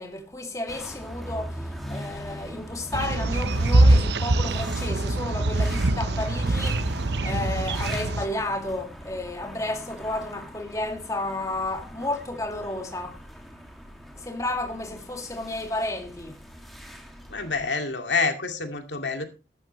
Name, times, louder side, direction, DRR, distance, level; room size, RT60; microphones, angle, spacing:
voice 1, 0.0-13.2 14.1-16.4, left 1 dB, 20° left, 2.3 m, -32 dB
sound 1, 0.7-17.6, equal, ahead, 2.4 m, -39 dB
sound 2, 2.9-8.2, right 2 dB, 75° right, 0.9 m, -23 dB
voice 2, 17.3-19.3, left 4 dB, 85° left, 2.4 m, -27 dB
14.0 x 12.5 x 3.2 m
head